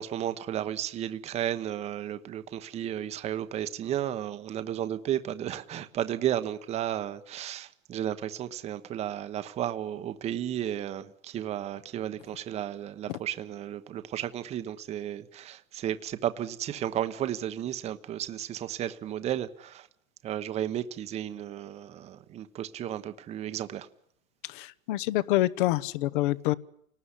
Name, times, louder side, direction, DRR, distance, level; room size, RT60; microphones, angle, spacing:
voice 1, 0.0-19.9 20.2-23.9, right 11 dB, 15° right, 1.0 m, -33 dB
voice 2, 24.4-26.5, left 16 dB, 40° left, 1.0 m, -27 dB
28.5 x 19.5 x 9.9 m
hypercardioid pair, 150°, 40 cm